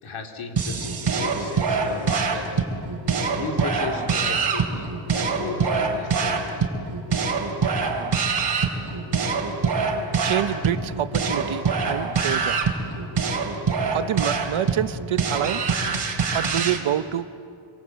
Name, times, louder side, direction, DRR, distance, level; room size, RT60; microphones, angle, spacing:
voice 1, 0.0-2.6 3.3-6.5, left 4 dB, 75° left, 3 dB, 2.8 m, -35 dB
sound 1, 0.6-16.8, right 5 dB, 50° right, 3.2 m, -25 dB
voice 2, 10.2-12.6 13.9-15.6 16.3-17.3, right 11 dB, 75° right, 12 dB, 1.0 m, -27 dB
26.0 x 25.5 x 8.2 m, 2.5 s
wide cardioid pair, 160°, 49 cm